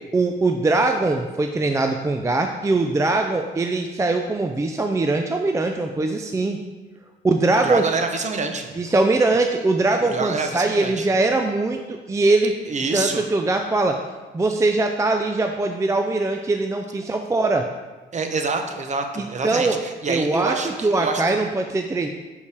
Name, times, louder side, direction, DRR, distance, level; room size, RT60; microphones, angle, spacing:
voice 1, 0.1-6.6 7.2-7.8 8.8-12.5 12.9-14.0 14.3-17.7 19.2-19.8 20.1-22.1, right 2 dB, 15° right, 4 dB, 0.4 m, -21 dB
voice 2, 7.5-8.7 10.1-11.1 12.7-13.2 18.1-21.4, right 4 dB, 35° right, 5 dB, 0.8 m, -26 dB
6.5 x 5.2 x 3.4 m, 1.3 s
cardioid pair, 90°, 20 cm